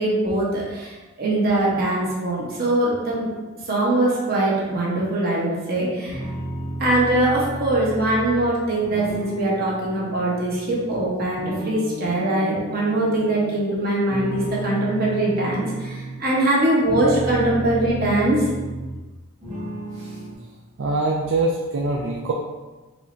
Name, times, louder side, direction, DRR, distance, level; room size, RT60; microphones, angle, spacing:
voice 1, 0.0-3.3 3.7-6.2 6.8-18.5, right 1 dB, 45° right, -4 dB, 1.1 m, -22 dB
sound 1, 6.1-11.0 11.4-13.6 14.1-16.2 16.7-19.1 19.4-20.3, right 1 dB, 30° right, 1.5 m, -33 dB
voice 2, 20.8-22.3, right 2 dB, 60° right, -1 dB, 0.4 m, -24 dB
4.8 x 3.1 x 2.6 m, 1.2 s
head